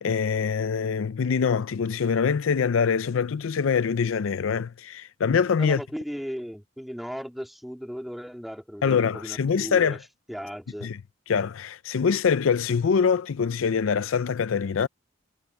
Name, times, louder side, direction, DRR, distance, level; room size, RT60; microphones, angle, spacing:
voice 1, 0.0-5.8 8.8-10.0 10.8-11.0 11.3-14.9, left 6 dB, 80° left, 0.5 m, -24 dB
voice 2, 5.6-10.0 10.3-10.9, equal, ahead, 2.1 m, -36 dB
head